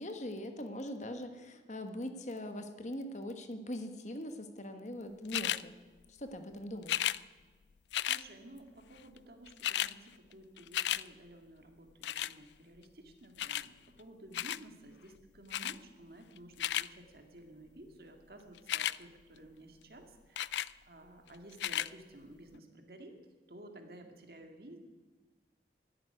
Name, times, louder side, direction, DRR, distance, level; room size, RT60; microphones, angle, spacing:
voice 1, 0.0-5.8 6.1-7.1, left 1 dB, 40° left, 7 dB, 1.3 m, -41 dB
sound 1, 5.3-5.6 6.8-7.2 7.9-8.2 9.2-9.3 9.5-9.9 10.3-11.0 12.0-12.3 13.4-13.7 14.3-14.6 15.5-15.8 16.4-16.9 18.6-19.0 20.4-20.7 21.5-21.9 22.6-22.7, left 12 dB, 75° left, 0.4 m, -33 dB
voice 2, 8.0-23.1 23.5-24.8, right 1 dB, 55° right, 4 dB, 2.1 m, -54 dB
13.0 x 11.0 x 9.8 m, 1.3 s
head